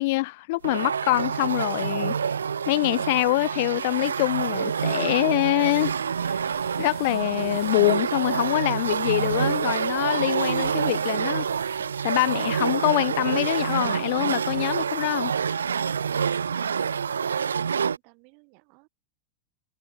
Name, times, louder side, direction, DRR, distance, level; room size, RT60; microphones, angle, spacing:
voice 1, 0.0-2.1 2.7-5.9 6.3-6.4 6.8-11.5 12.0-15.3, left 22 dB, 50° left, 0.3 m, -25 dB
sound 1, 0.6-18.0, right 7 dB, 70° right, 0.5 m, -27 dB
sound 2, 5.6-15.4, right 10 dB, 25° right, 2.0 m, -51 dB
sound 3, 11.5-15.2, right 3 dB, 10° right, 3.8 m, -58 dB
voice 2, 17.4-18.9, right 39 dB, 45° right, 4.1 m, -57 dB
figure-of-eight pair, 90°, 0 cm